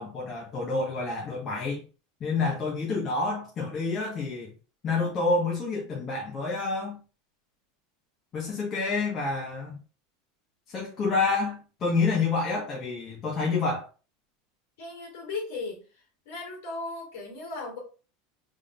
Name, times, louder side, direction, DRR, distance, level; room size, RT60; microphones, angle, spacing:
voice 1, 0.0-1.8 2.2-4.5 4.8-7.0 8.3-9.8 10.7-13.9, left 3 dB, 35° left, 1.5 m, -28 dB
voice 2, 14.8-15.8 16.3-17.8, left 3 dB, 65° left, 2.6 m, -36 dB
5.2 x 3.8 x 2.6 m
hypercardioid pair, 85°, 0 cm